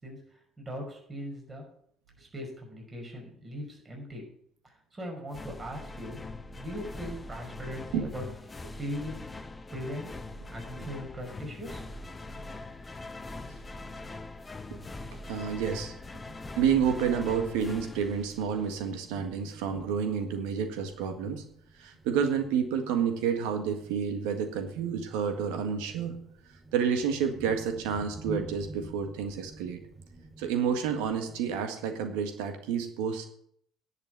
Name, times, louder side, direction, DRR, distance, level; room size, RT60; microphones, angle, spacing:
voice 1, 0.0-1.6 2.2-4.2 4.6-6.2 6.5-8.2 8.7-9.2 9.7-12.1, equal, 30° right, 1 dB, 5.4 m, -40 dB
sound 1, 5.3-19.0, left 2 dB, 25° left, 1.0 m, -42 dB
Thunder, 12.0-31.4, right 2 dB, 15° right, 6.7 m, -50 dB
voice 2, 15.3-15.9 16.6-21.4 21.8-26.1 26.7-29.8 30.4-33.2, right 7 dB, 75° right, 6 dB, 1.7 m, -29 dB
10.5 x 6.7 x 9.3 m, 0.67 s
hypercardioid pair, 55°, 0 cm